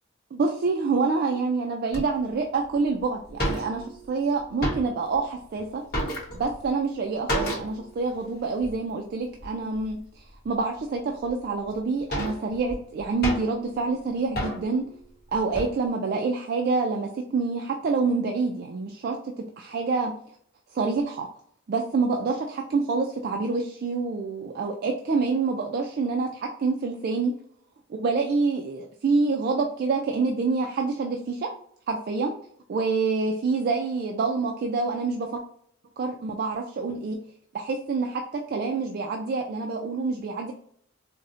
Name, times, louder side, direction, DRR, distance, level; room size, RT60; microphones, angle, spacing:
voice 1, 0.3-5.8 6.3-14.9 15.3-20.1 20.7-21.3 21.7-27.3 27.9-31.5 31.9-32.3 32.7-35.4 36.0-37.2 37.5-40.5, right 4 dB, 50° right, 2 dB, 0.3 m, -27 dB
sound 1, 1.9-2.0 2.7-2.8 3.0-3.1 3.3-4.1 4.4-5.2 5.5-6.7 7.3-7.9 8.1-8.2 8.6-8.8 9.4-9.9 10.5-10.6 11.3-11.4 11.7-13.7 14.3-14.8 15.3-15.8, equal, 50° left, 0.9 m, -31 dB
4.0 x 2.0 x 2.5 m, 0.64 s
head